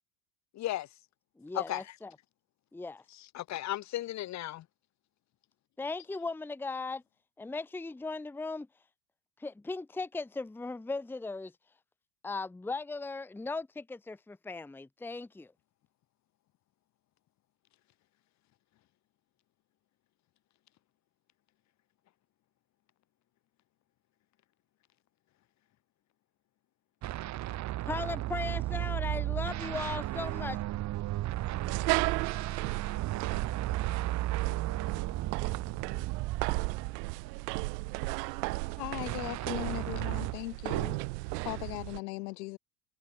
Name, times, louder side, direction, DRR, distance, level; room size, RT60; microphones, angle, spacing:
voice 1, 0.5-0.9 1.5-1.9 3.1-4.7, left 14 dB, 35° left, 3.1 m, -35 dB
voice 2, 1.4-2.1 2.7-3.0 5.8-7.0 7.4-8.7 9.4-11.5 12.2-15.5 27.9-30.6, left 3 dB, 5° left, 1.2 m, -37 dB
Sci-Fi Distortion, 27.0-37.3 39.1-40.3, right 15 dB, 35° right, 2.0 m, -34 dB
sound 1, 31.6-42.0, right 28 dB, 70° right, 3.5 m, -35 dB
voice 3, 38.8-41.0 41.4-42.6, left 22 dB, 85° left, 4.9 m, -38 dB
cardioid pair, 170°, 49 cm